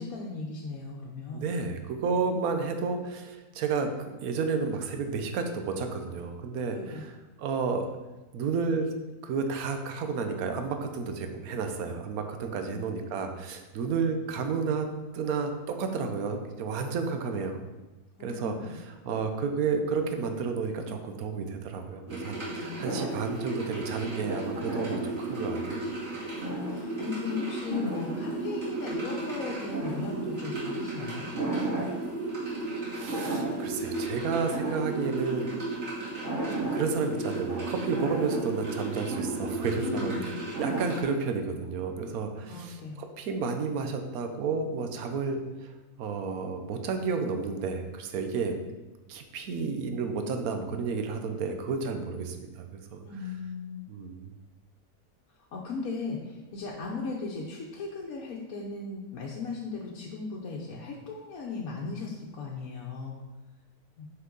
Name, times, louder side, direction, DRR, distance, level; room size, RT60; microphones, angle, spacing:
voice 1, 0.0-1.5 6.7-7.0 12.6-12.8 18.2-18.7 22.5-22.8 26.3-31.3 39.8-40.3 42.5-43.0 53.0-53.9 55.5-63.2 64.0-64.1, left 4 dB, 70° left, -2 dB, 1.2 m, -37 dB
voice 2, 1.3-6.8 7.4-7.9 8.3-8.9 9.2-14.9 15.1-17.6 18.2-25.9 32.9-35.5 36.7-40.1 40.6-45.7 46.0-48.5 49.1-53.0 53.9-54.3, right 5 dB, 75° right, 6 dB, 1.2 m, -31 dB
sound 1, 22.1-41.0, right 2 dB, 60° right, 2.2 m, -33 dB
5.8 x 5.5 x 3.8 m, 1.1 s
omnidirectional pair, 1.6 m